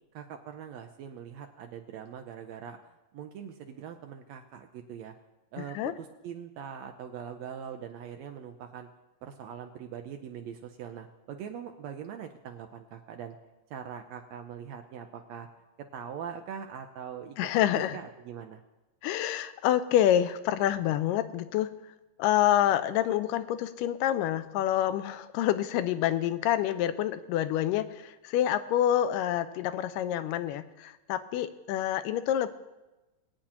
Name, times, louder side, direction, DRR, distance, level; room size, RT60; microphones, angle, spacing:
voice 1, 0.1-5.1 5.5-8.9 9.2-13.4 13.7-15.5 15.9-17.4 17.7-18.6, right 8 dB, 85° right, 5 dB, 1.5 m, -42 dB
voice 2, 5.6-5.9 17.4-18.0 19.0-21.7 22.2-32.5, left 11 dB, 90° left, 12 dB, 2.2 m, -27 dB
21.5 x 8.6 x 2.9 m, 1.1 s
omnidirectional pair, 3.8 m